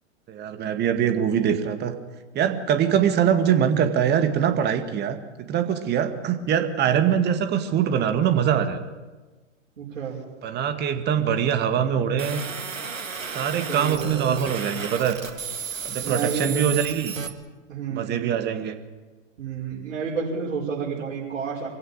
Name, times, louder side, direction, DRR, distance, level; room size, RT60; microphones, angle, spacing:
voice 1, 0.3-2.0 2.3-5.2 5.5-8.8 10.4-12.4 13.3-15.2 15.8-17.1 17.9-18.8, right 8 dB, 25° right, 8 dB, 2.1 m, -23 dB
voice 2, 9.8-10.2 13.7-14.4 16.0-16.6 17.7-18.3 19.4-21.7, right 6 dB, 65° right, -7 dB, 5.6 m, -30 dB
sound 1, 12.2-17.3, right 6 dB, 85° right, 1.9 m, -33 dB
24.5 x 16.0 x 8.8 m, 1.3 s
figure-of-eight pair, 110°, 39 cm